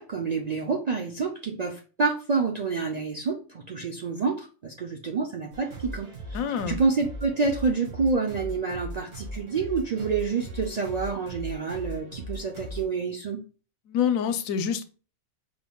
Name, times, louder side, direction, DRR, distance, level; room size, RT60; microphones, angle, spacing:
voice 1, 0.0-6.1 6.7-13.4, right 4 dB, 60° right, 0.4 m, -28 dB
sound 1, 5.5-12.9, equal, 80° right, 1.9 m, -39 dB
voice 2, 6.3-6.8 13.9-14.8, left 8 dB, 90° left, 1.0 m, -26 dB
5.0 x 3.5 x 2.2 m
omnidirectional pair, 1.4 m